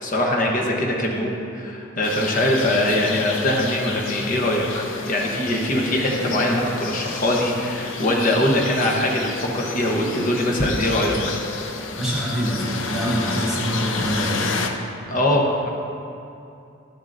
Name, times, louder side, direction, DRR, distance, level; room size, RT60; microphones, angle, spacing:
voice 1, 0.0-11.4 15.1-15.7, left 1 dB, 45° left, -1 dB, 1.0 m, -22 dB
sound 1, 2.0-14.7, left 4 dB, 80° left, 0.6 m, -30 dB
voice 2, 11.9-14.4, equal, 5° right, -9 dB, 2.0 m, -25 dB
11.5 x 7.3 x 2.6 m, 2.6 s
head